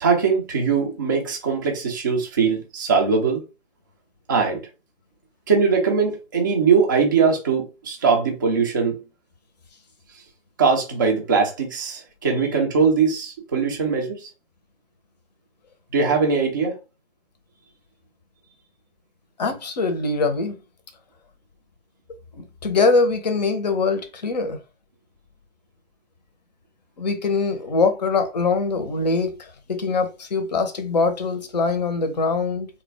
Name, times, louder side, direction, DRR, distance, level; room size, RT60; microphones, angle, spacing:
voice 1, 0.0-3.4 4.3-4.6 5.5-9.0 10.6-14.3 15.9-16.8, right 5 dB, 20° right, 0.5 m, -21 dB
voice 2, 19.4-20.6 22.4-24.6 27.0-32.7, left 4 dB, 35° left, 0.7 m, -23 dB
3.4 x 2.2 x 3.2 m
figure-of-eight pair, 130°, 35 cm